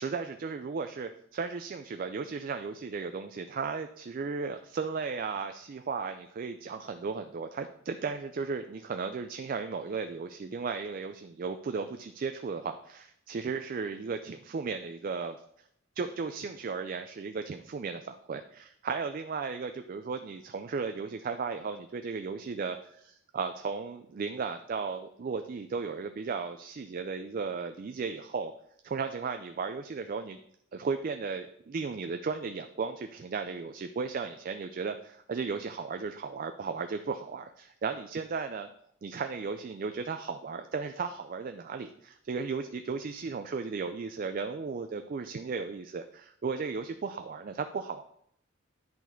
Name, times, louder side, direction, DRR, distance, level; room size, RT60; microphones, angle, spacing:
voice 1, 0.0-15.4 16.0-28.5 28.8-30.4 30.7-38.7 39.0-48.0, right 5 dB, 40° right, 8 dB, 0.4 m, -35 dB
10.5 x 4.1 x 4.4 m, 0.70 s
head